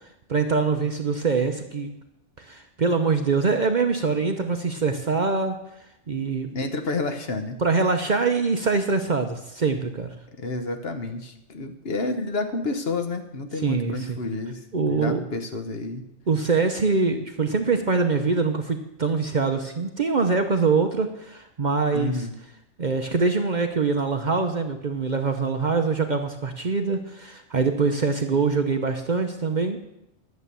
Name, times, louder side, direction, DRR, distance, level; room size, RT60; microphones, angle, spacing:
voice 1, 0.3-1.9 2.4-5.6 6.1-6.5 7.6-10.1 13.6-14.2 14.7-15.2 16.3-22.3 22.8-29.8, right 4 dB, 45° right, 5 dB, 0.8 m, -24 dB
voice 2, 6.5-7.6 10.4-16.0 21.9-22.3, left 3 dB, 55° left, 6 dB, 1.3 m, -30 dB
11.5 x 7.4 x 6.8 m, 0.85 s
omnidirectional pair, 1.3 m